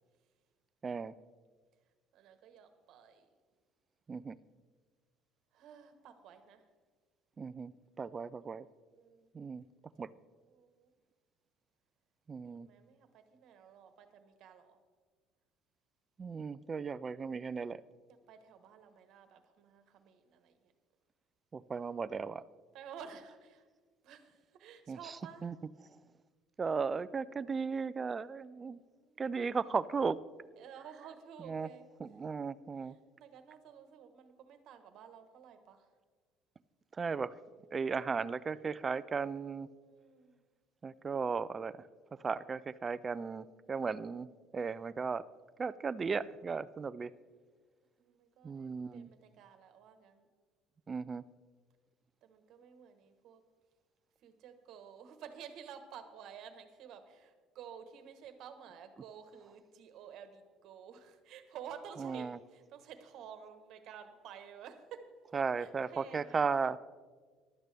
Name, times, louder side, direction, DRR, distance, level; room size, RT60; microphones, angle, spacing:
voice 1, 0.8-1.1 4.1-4.4 7.4-7.7 8.0-8.7 9.3-9.6 10.0-10.1 12.3-12.7 16.2-17.8 21.5-22.4 24.9-25.2 25.4-25.5 26.6-28.8 29.2-30.2 31.5-31.7 32.0-33.0 37.0-37.3 37.7-39.7 40.8-41.8 42.2-44.3 44.5-45.2 45.6-47.1 48.4-49.1 50.9-51.2 62.0-62.4 65.3-66.8, right 5 dB, 20° right, 17 dB, 0.3 m, -36 dB
voice 2, 2.1-3.3 5.5-6.7 8.9-9.3 10.0-10.2 10.5-10.9 12.4-14.8 18.1-20.7 22.7-23.7 24.0-25.5 28.6-29.2 29.6-29.7 30.6-31.9 32.8-35.9 39.8-40.4 43.6-44.1 47.0-47.2 48.0-50.3 52.2-53.4 54.2-66.5, right 8 dB, 50° right, 8 dB, 1.2 m, -52 dB
15.5 x 12.0 x 3.4 m, 1.5 s
cardioid pair, 160°, 0 cm